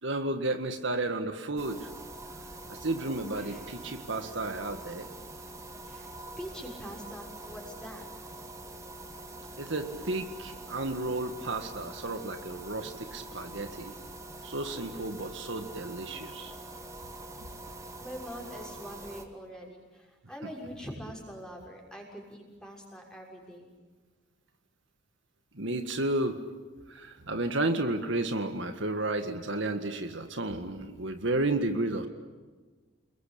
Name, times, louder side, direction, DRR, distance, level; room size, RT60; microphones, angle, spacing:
voice 1, 0.0-1.9 2.7-5.1 9.6-13.9 14.4-16.5 25.6-26.4 26.9-32.1, right 2 dB, 65° right, 7 dB, 1.8 m, -32 dB
sound 1, 1.6-19.3, right 2 dB, 15° right, 2.2 m, -45 dB
voice 2, 6.4-8.0 18.0-23.7, equal, 5° left, -1 dB, 6.4 m, -44 dB
30.0 x 22.0 x 8.6 m, 1.4 s
head